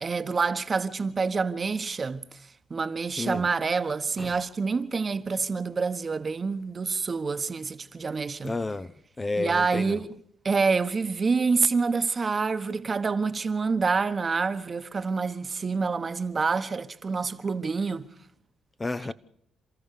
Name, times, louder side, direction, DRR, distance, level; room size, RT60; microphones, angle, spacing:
voice 1, 0.0-2.2 2.7-8.5 9.4-10.0 10.4-18.1, right 4 dB, 35° right, 1.2 m, -27 dB
voice 2, 3.2-3.5 4.2-4.4 8.4-10.0 18.8-19.1, left 2 dB, 20° left, 0.7 m, -31 dB
29.5 x 13.5 x 6.8 m
cardioid pair, 90°, 0 cm